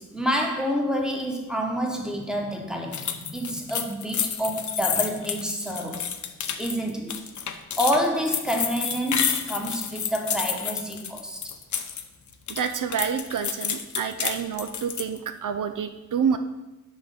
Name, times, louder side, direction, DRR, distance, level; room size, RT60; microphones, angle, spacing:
voice 1, 0.0-6.1 6.6-7.2 7.8-11.4, equal, ahead, 1 dB, 1.2 m, -28 dB
sound 1, 2.9-12.0 12.3-15.2, left 7 dB, 65° left, 0.6 m, -30 dB
voice 2, 12.5-16.4, right 7 dB, 75° right, 8 dB, 0.5 m, -28 dB
6.2 x 5.1 x 5.7 m, 1.0 s
wide cardioid pair, 95°, 31 cm